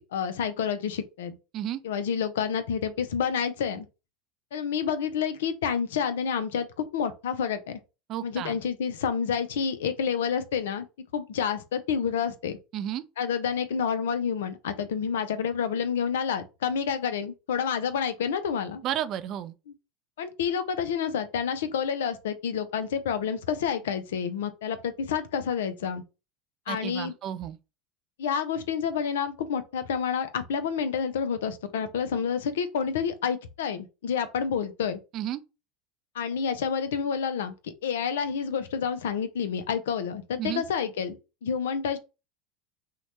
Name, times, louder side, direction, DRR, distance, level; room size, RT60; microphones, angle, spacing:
voice 1, 0.1-1.4 1.8-3.9 4.5-7.8 8.2-10.8 11.1-12.6 13.2-18.8 19.7-19.8 20.2-26.0 26.7-27.1 28.2-35.0 36.2-42.0, left 7 dB, 80° left, 0.4 m, -29 dB
voice 2, 8.1-8.6 12.7-13.0 18.8-19.5 26.7-27.6 35.1-35.4 40.4-40.6, right 11 dB, 50° right, 0.3 m, -32 dB
2.8 x 2.1 x 3.0 m
hypercardioid pair, 90°, 0 cm